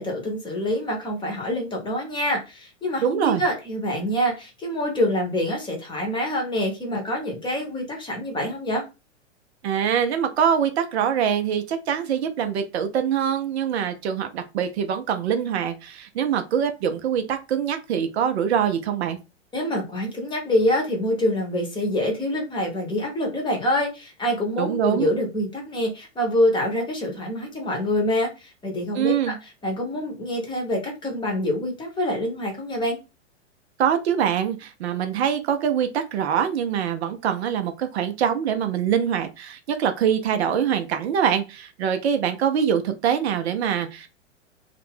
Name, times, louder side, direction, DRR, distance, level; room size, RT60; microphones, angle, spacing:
voice 1, 0.0-8.8 19.5-29.3 29.6-33.0, left 1 dB, 15° left, 1 dB, 0.8 m, -26 dB
voice 2, 3.0-3.4 9.6-19.2 24.6-25.1 29.0-29.4 33.8-44.1, right 8 dB, 60° right, 8 dB, 0.5 m, -24 dB
2.4 x 2.1 x 3.3 m, 0.28 s
hypercardioid pair, 105°, 37 cm